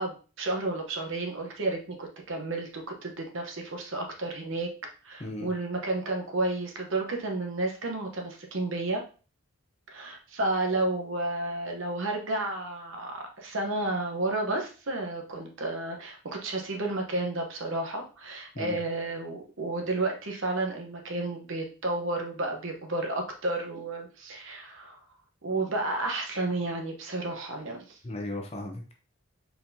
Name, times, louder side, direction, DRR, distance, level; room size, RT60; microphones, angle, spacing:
voice 1, 0.0-4.7 5.0-9.0 9.9-25.0 25.4-28.0, right 2 dB, 60° right, 2 dB, 0.9 m, -31 dB
voice 2, 28.0-28.9, left 1 dB, 30° left, 2 dB, 0.7 m, -36 dB
4.5 x 4.0 x 2.7 m, 0.36 s
head